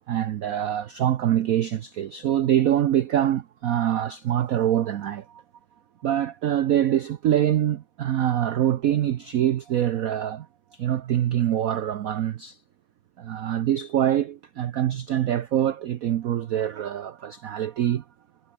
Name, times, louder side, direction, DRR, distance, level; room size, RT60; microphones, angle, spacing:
voice 1, 0.1-5.4 6.0-10.5 10.7-12.6 13.2-18.0, right 11 dB, 80° right, 0.7 m, -24 dB
omnidirectional pair, 2.3 m